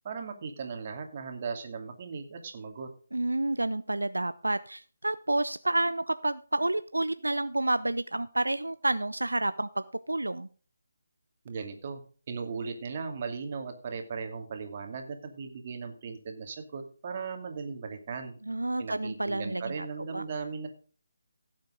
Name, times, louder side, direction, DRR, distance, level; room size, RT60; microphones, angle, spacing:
voice 1, 0.0-2.9 11.4-12.0 12.3-18.3 18.8-20.7, right 5 dB, 35° right, 4 dB, 2.5 m, -37 dB
voice 2, 3.1-10.5 18.5-19.9 20.1-20.2, right 2 dB, 85° right, 13 dB, 0.6 m, -29 dB
17.0 x 7.5 x 3.8 m, 0.40 s
figure-of-eight pair, 150°, 0 cm